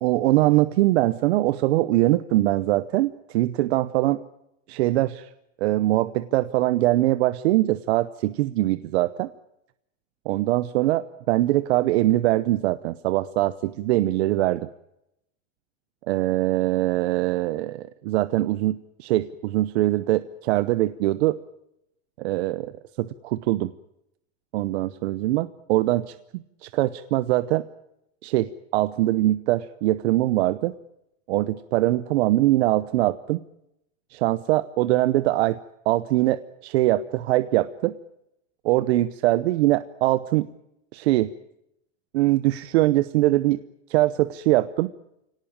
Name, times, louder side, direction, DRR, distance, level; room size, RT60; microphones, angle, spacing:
voice 1, 0.0-4.2 4.7-5.3 5.6-9.3 10.2-14.7 16.1-21.4 22.2-22.7 23.0-23.7 24.5-27.7 28.2-30.7 31.3-33.4 34.1-35.6 35.9-37.9 38.6-40.5 40.9-41.3 42.1-43.6 43.9-44.9, right 16 dB, 60° right, 15 dB, 0.8 m, -22 dB
25.0 x 18.0 x 8.9 m, 0.84 s
supercardioid pair, 170°, 37 cm